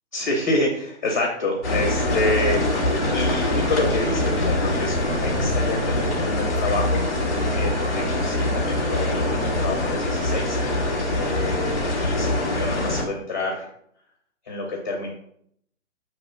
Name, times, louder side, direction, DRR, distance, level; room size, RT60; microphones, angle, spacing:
voice 1, 0.1-7.0 7.5-13.7 14.4-15.1, left 2 dB, 15° left, -3 dB, 0.6 m, -28 dB
sound 1, 1.6-13.0, left 1 dB, ahead, 1.0 m, -23 dB
7.1 x 3.2 x 5.7 m, 0.69 s
hypercardioid pair, 180°, 38 cm